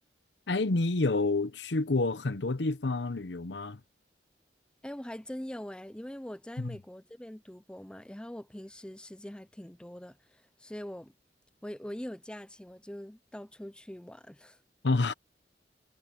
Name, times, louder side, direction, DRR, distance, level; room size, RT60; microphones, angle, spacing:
voice 1, 0.5-3.8 6.6-6.8 14.8-15.1, left 3 dB, 80° left, 0.9 m, -28 dB
voice 2, 4.8-11.1 11.6-14.6, equal, 5° left, 0.5 m, -43 dB
head